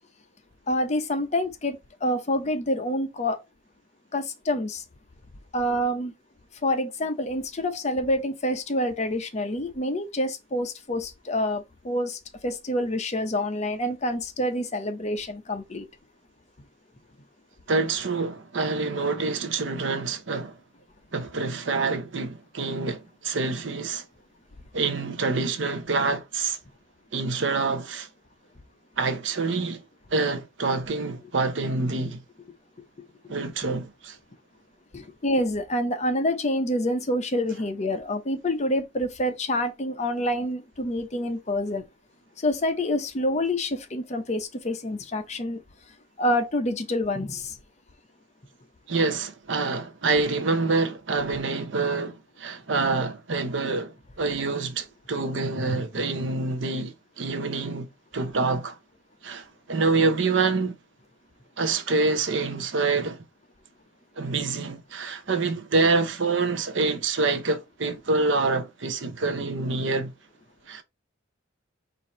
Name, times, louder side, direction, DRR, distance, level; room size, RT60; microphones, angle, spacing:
voice 1, 0.7-3.4 4.1-4.8 5.5-6.1 6.6-15.9 33.2-33.3 34.9-41.8 42.4-45.6 46.2-47.6, left 1 dB, 35° left, 0.7 m, -27 dB
voice 2, 17.7-20.6 21.1-24.0 24.7-26.6 27.1-28.1 29.0-29.8 30.1-32.2 33.3-34.2 48.9-57.9 58.1-58.8 59.2-60.7 61.6-63.2 64.2-70.1 70.7-70.8, right 3 dB, 65° right, 0.7 m, -26 dB
4.5 x 2.6 x 4.1 m
head